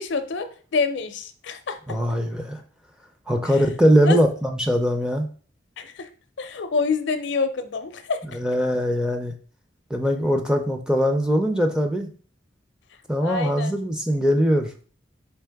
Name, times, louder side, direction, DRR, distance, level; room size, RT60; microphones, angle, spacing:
voice 1, 0.0-1.8 4.0-4.2 5.8-6.1 6.4-8.2 13.2-13.7, left 4 dB, 65° left, 9 dB, 0.5 m, -27 dB
voice 2, 1.9-2.6 3.3-5.3 8.3-9.3 9.9-12.1 13.1-14.7, equal, 5° right, 4 dB, 0.4 m, -21 dB
4.6 x 3.2 x 3.4 m, 0.41 s
head